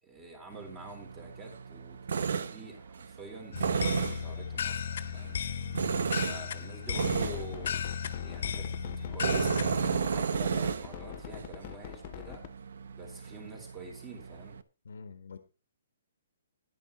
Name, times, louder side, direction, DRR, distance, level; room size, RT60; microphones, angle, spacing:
voice 1, 0.0-4.8 5.1-5.4 6.2-7.8 8.2-8.7 9.0-12.4 13.0-14.6, right 2 dB, 15° right, 3 dB, 4.1 m, -46 dB
Tools, 0.5-14.6, right 6 dB, 75° right, 0.8 m, -34 dB
sound 1, 3.5-10.0, left 8 dB, 65° left, 1.4 m, -35 dB
sound 2, 6.9-12.5, left 14 dB, 40° left, 0.8 m, -43 dB
voice 2, 14.8-15.4, left 5 dB, 85° left, 8 dB, 1.5 m, -45 dB
11.0 x 11.0 x 4.0 m, 0.32 s
hypercardioid pair, 155°, 0 cm